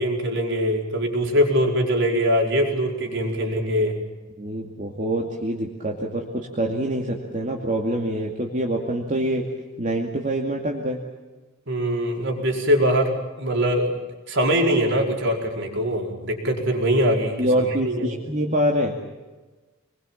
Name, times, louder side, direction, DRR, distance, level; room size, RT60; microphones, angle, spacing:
voice 1, 0.0-4.0 11.7-14.0 14.3-18.1, equal, 60° right, 1 dB, 5.1 m, -22 dB
voice 2, 4.4-9.4 9.8-11.0 17.4-19.0, right 1 dB, 40° right, -1 dB, 2.5 m, -25 dB
27.0 x 21.5 x 7.4 m, 1.2 s
head